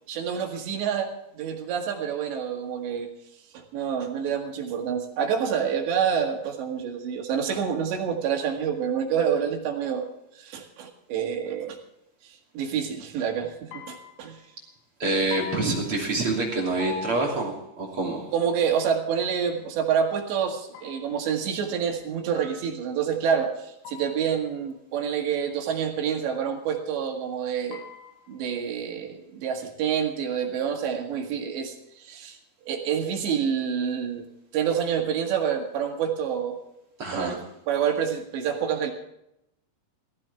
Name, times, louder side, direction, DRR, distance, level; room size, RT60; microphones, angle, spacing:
voice 1, 0.1-3.1 3.5-10.1 10.4-11.8 12.6-14.4 18.3-27.8 28.3-32.4 32.7-34.3 34.5-36.6 37.1-37.4 37.7-38.9, right 7 dB, 75° right, 2 dB, 4.2 m, -27 dB
sound 1, 13.7-14.5 15.3-16.5 16.8-17.9 20.7-21.4 22.4-23.1 23.9-24.5 27.7-28.5, left 4 dB, 85° left, 5.0 m, -42 dB
voice 2, 15.0-18.3 37.0-37.4, right 2 dB, 35° right, -2 dB, 3.3 m, -26 dB
18.5 x 15.0 x 3.5 m, 0.81 s
omnidirectional pair, 5.1 m